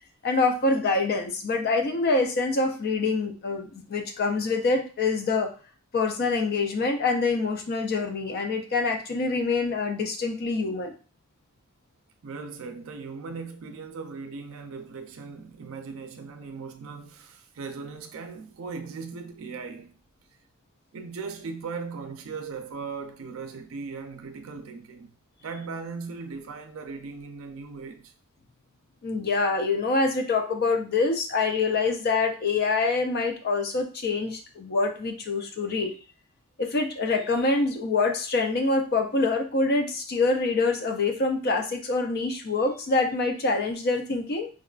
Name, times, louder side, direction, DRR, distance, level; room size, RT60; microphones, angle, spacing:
voice 1, 0.2-5.5 5.9-11.0 29.0-36.0 36.6-44.5, left 3 dB, 50° left, 0.4 m, -25 dB
voice 2, 12.2-19.9 20.9-25.1 25.4-28.1, right 4 dB, 75° right, 0.4 m, -38 dB
4.7 x 2.2 x 2.3 m
head